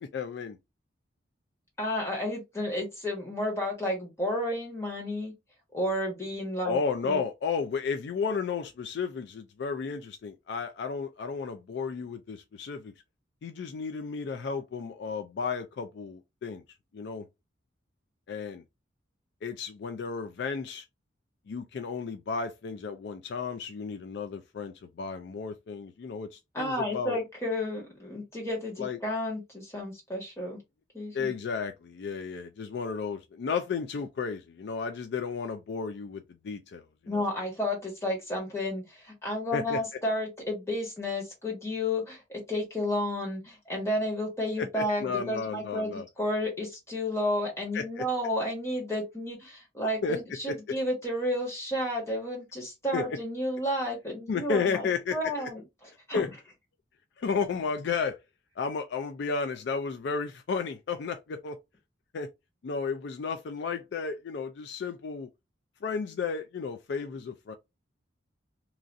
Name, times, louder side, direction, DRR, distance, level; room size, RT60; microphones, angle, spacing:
voice 1, 0.0-0.6 6.6-12.9 13.4-16.6 16.9-17.3 18.3-18.6 19.4-20.9 21.5-27.2 28.8-29.0 31.1-37.2 39.5-39.8 44.6-46.0 47.7-48.0 50.0-50.2 50.5-50.8 52.9-53.2 54.3-55.3 56.1-56.3 57.2-58.2 58.6-61.6 62.1-62.3 62.6-65.3 65.8-67.5, left 5 dB, 60° left, 0.3 m, -33 dB
voice 2, 1.8-5.3 5.7-7.2 26.5-30.6 30.9-31.3 37.1-55.6 56.1-56.2, left 1 dB, 15° left, 1.4 m, -32 dB
3.0 x 2.5 x 2.5 m
head